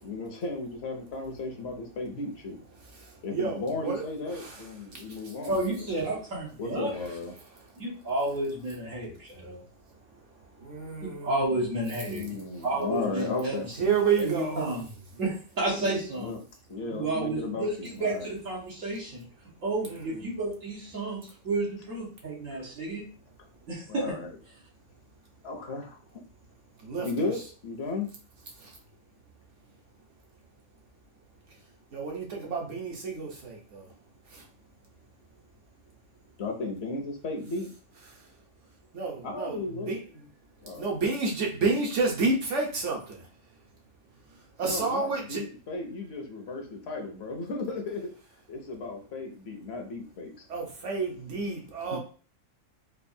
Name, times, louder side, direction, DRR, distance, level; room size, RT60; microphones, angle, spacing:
voice 1, 0.0-2.6 3.2-5.9 6.6-7.3 12.1-13.7 15.7-16.4 16.7-18.3 22.6-22.7 23.9-24.3 25.4-26.0 27.0-28.1 36.4-37.7 39.2-39.9 40.6-40.9 44.6-48.1 48.5-50.3 51.9-52.0, left 3 dB, 60° left, 3 dB, 0.9 m, -35 dB
voice 2, 2.7-4.0 4.3-5.4 6.6-6.9 10.5-11.5 13.8-14.8 19.8-20.2 26.8-27.3 28.6-28.8 31.9-33.9 34.3-34.5 38.1-38.3 38.9-40.0 40.8-43.3 44.6-45.4 50.5-52.0, right 4 dB, 70° right, 0 dB, 1.3 m, -30 dB
voice 3, 5.5-6.9 7.8-9.6 11.0-12.3 12.6-14.8 15.2-16.4 16.9-19.2 19.6-23.0 23.7-24.1, right 2 dB, 85° right, -5 dB, 1.9 m, -31 dB
4.4 x 2.4 x 2.7 m, 0.39 s
omnidirectional pair, 1.3 m